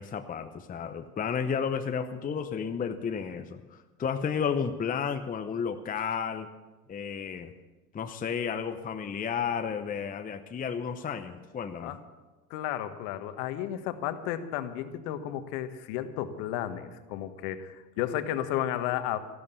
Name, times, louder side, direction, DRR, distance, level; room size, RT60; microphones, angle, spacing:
voice 1, 0.0-6.5 6.9-7.5 7.9-12.0, left 6 dB, 20° left, 7 dB, 0.8 m, -32 dB
voice 2, 12.5-19.2, left 11 dB, 55° left, 10 dB, 1.5 m, -33 dB
14.5 x 12.0 x 6.9 m, 1.2 s
hypercardioid pair, 85°, 47 cm